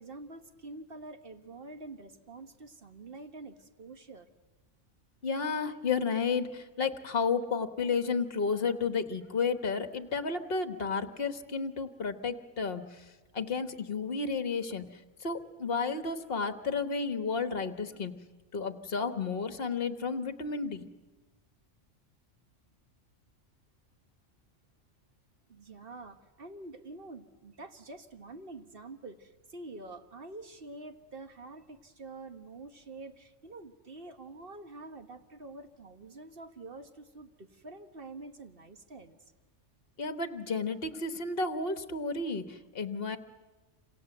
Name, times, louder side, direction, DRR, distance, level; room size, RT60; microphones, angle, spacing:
voice 1, 0.0-4.3 25.5-39.2, right 2 dB, 45° right, 8 dB, 1.6 m, -47 dB
voice 2, 5.2-13.0 13.3-14.9 15.2-18.2 18.5-20.8 40.0-43.2, left 4 dB, 50° left, 10 dB, 1.5 m, -32 dB
28.0 x 27.0 x 7.9 m, 1.2 s
omnidirectional pair, 1.3 m